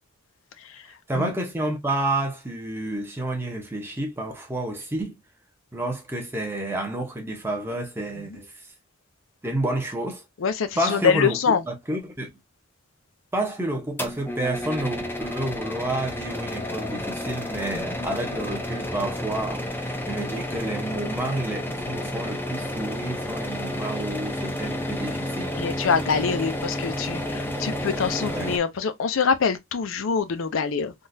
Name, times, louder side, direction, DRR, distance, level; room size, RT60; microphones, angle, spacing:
voice 1, 1.1-5.2 5.7-8.7 9.4-10.2 10.8-12.3 13.3-25.6 28.1-28.5, right 1 dB, 10° right, 0.8 m, -30 dB
voice 2, 10.4-11.6 17.7-17.8 25.5-30.9, left 6 dB, 75° left, 0.5 m, -24 dB
sound 1, 14.0-28.6, left 1 dB, 10° left, 0.4 m, -31 dB
3.7 x 2.4 x 2.6 m
head